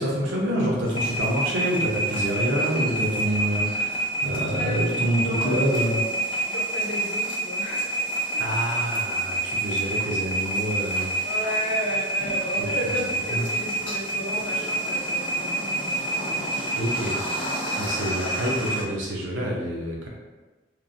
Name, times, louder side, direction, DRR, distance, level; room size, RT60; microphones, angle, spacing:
voice 1, 0.0-6.0 8.4-11.3 12.6-12.7 13.3-13.4 16.7-17.2 17.8-20.1, equal, 70° right, -2 dB, 0.6 m, -27 dB
sound 1, 0.9-18.8, right 2 dB, 25° left, 0.4 m, -28 dB
voice 2, 4.5-6.1 6.4-8.4 11.2-16.6, equal, 65° left, -3 dB, 0.7 m, -33 dB
3.0 x 2.0 x 2.5 m, 1.2 s
head